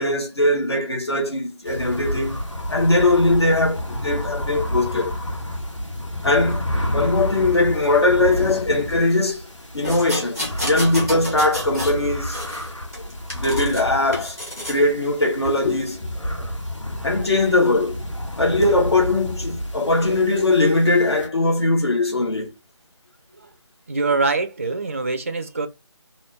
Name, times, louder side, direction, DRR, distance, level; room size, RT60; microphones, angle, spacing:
voice 1, 0.0-2.4 2.7-5.1 6.2-6.6 6.9-9.5 9.7-12.4 13.3-14.4 14.6-16.1 17.0-18.0 18.4-22.5, left 2 dB, 60° left, 1.2 m, -20 dB
sound 1, 1.7-21.3, equal, 90° left, 1.6 m, -30 dB
sound 2, 9.8-12.0 12.3-13.8 14.1-14.8 15.4-15.6, left 1 dB, 5° left, 0.7 m, -30 dB
voice 2, 23.9-25.7, right 3 dB, 30° right, 0.4 m, -24 dB
4.0 x 2.7 x 3.1 m
figure-of-eight pair, 160°, 15 cm